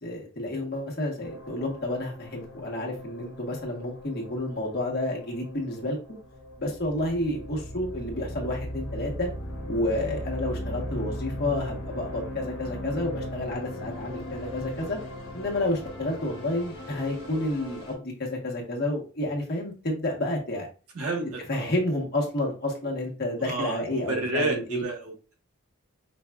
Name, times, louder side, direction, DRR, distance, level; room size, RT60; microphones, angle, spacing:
voice 1, 0.0-6.0 6.6-9.3 9.7-15.0 15.3-20.7 21.5-24.8, left 1 dB, 45° left, 0 dB, 1.1 m, -30 dB
sound 1, 1.2-17.9, equal, 70° left, 1.2 m, -38 dB
voice 2, 20.9-21.7 23.4-25.4, right 2 dB, 85° right, 1 dB, 1.1 m, -30 dB
5.1 x 2.4 x 2.2 m, 0.34 s
head